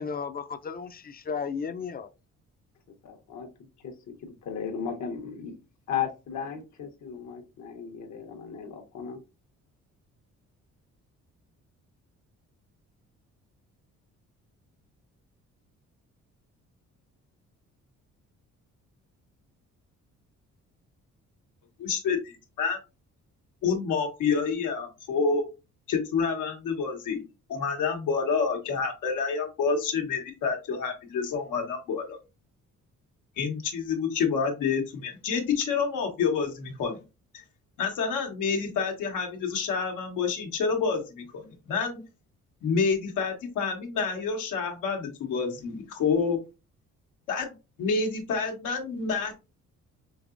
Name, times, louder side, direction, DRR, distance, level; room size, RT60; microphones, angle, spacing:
voice 1, 0.0-2.1, left 6 dB, 30° left, 0.4 m, -34 dB
voice 2, 3.0-3.5 3.8-5.5 5.9-9.2, left 7 dB, 65° left, 1.0 m, -35 dB
voice 3, 21.8-22.8 23.6-25.4 25.9-27.2 27.5-32.2 33.4-37.0 37.3-37.4 37.8-42.0 42.6-46.5 47.3-49.3, left 5 dB, 90° left, 1.2 m, -28 dB
5.2 x 2.8 x 2.5 m
cardioid pair, 90°, 30 cm